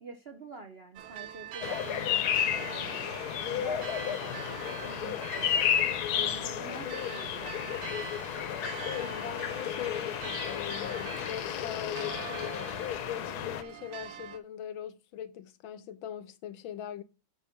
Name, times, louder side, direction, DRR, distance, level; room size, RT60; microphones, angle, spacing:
voice 1, 0.0-3.0 3.5-5.5 6.1-7.8, right 4 dB, 50° right, 0.7 m, -46 dB
sound 1, 1.0-14.4, right 9 dB, 85° right, 1.6 m, -44 dB
sound 2, 1.6-13.6, left 10 dB, 65° left, 1.1 m, -32 dB
voice 2, 8.9-12.8 13.1-17.0, left 10 dB, 90° left, 1.6 m, -41 dB
9.1 x 4.2 x 5.8 m
omnidirectional pair, 2.1 m